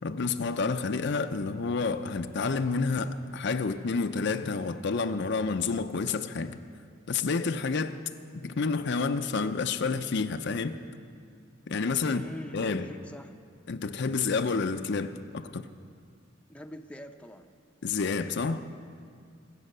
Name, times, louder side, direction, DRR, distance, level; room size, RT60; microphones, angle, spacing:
voice 1, 0.0-6.6 7.1-8.0 8.3-10.8 11.7-12.9 13.7-15.7 17.8-18.6, left 4 dB, 60° left, 9 dB, 0.6 m, -29 dB
voice 2, 12.0-13.3 16.5-17.5, equal, 5° left, 5 dB, 0.6 m, -44 dB
25.0 x 8.5 x 6.6 m, 2.3 s
head